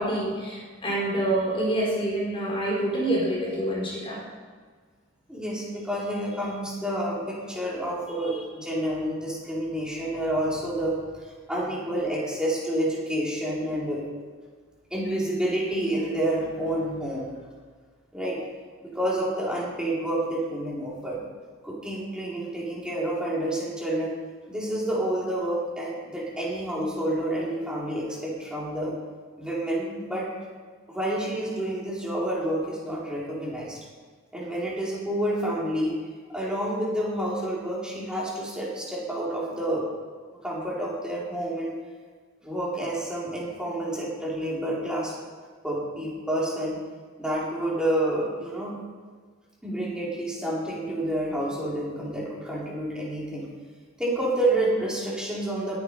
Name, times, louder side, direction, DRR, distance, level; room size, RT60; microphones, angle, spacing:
voice 1, 0.0-4.2, right 1 dB, 25° left, -4 dB, 4.0 m, -27 dB
voice 2, 5.3-14.0 14.9-17.3 18.1-18.4 18.8-21.2 21.6-24.1 24.5-28.9 29.4-30.3 30.9-33.8 34.3-35.9 36.3-39.8 40.4-41.8 42.4-45.1 45.6-46.8 47.2-48.7 49.6-53.5 54.0-55.7, right 1 dB, 5° right, -7 dB, 4.6 m, -29 dB
22.0 x 9.8 x 5.1 m, 1.5 s
head